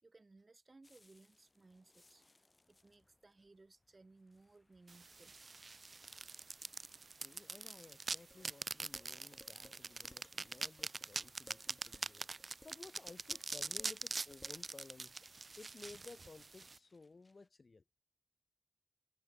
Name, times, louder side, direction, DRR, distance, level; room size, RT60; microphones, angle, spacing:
voice 1, 0.0-2.3 2.7-5.4, right 3 dB, 60° right, 4.2 m, -63 dB
sound 1, 0.8-17.5, left 2 dB, 50° left, 6.3 m, -76 dB
sound 2, 4.9-16.8, right 3 dB, 80° right, 0.4 m, -44 dB
voice 2, 7.2-12.3 12.6-15.3 15.6-17.8, left 3 dB, 75° left, 1.2 m, -57 dB
Dishes pots and pans, 8.3-14.6, left 1 dB, 25° left, 2.5 m, -63 dB
wide cardioid pair, 45°, 0 cm